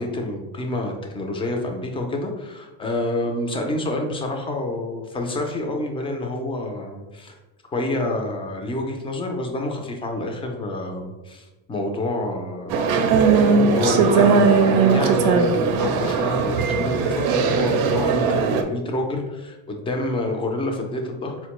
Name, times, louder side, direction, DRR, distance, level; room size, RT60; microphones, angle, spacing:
voice 1, 0.0-7.3 7.7-12.8 13.3-21.4, left 2 dB, 15° left, 2 dB, 0.3 m, -28 dB
sound 1, 12.7-18.6, right 5 dB, 90° right, 0.5 m, -19 dB
4.2 x 2.1 x 2.9 m, 1.1 s
cardioid pair, 130°, 43 cm